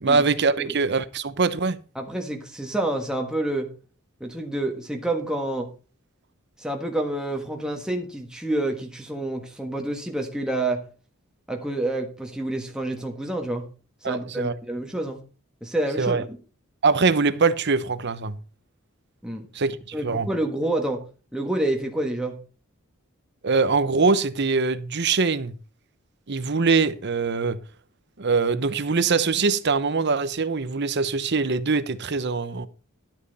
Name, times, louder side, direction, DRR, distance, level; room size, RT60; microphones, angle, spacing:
voice 1, 0.0-1.8 14.0-14.5 16.0-16.2 16.8-18.4 19.5-20.3 23.4-25.5 26.3-27.6 28.2-32.7, right 4 dB, 55° right, 0.9 m, -23 dB
voice 2, 1.9-3.7 4.2-5.7 6.6-10.8 11.5-13.7 14.0-15.2 15.6-16.4 19.2-19.5 19.9-21.0 21.3-22.4, right 1 dB, 5° right, 1.5 m, -28 dB
12.0 x 8.5 x 4.1 m
head